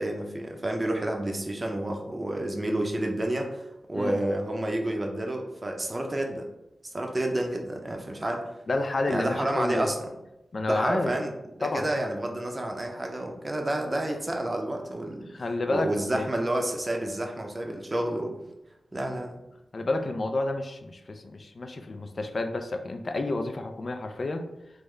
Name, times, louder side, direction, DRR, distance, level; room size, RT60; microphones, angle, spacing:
voice 1, 0.0-6.5 6.9-8.6 9.1-10.0 10.7-11.3 11.6-15.3 15.7-18.4 18.9-19.4, right 1 dB, 30° right, 2 dB, 0.5 m, -30 dB
voice 2, 8.7-9.9 10.5-11.1 11.6-12.0 15.3-16.3 19.7-24.4, left 2 dB, 50° left, 6 dB, 0.3 m, -30 dB
3.6 x 2.1 x 3.2 m, 0.91 s
cardioid pair, 70°, 0 cm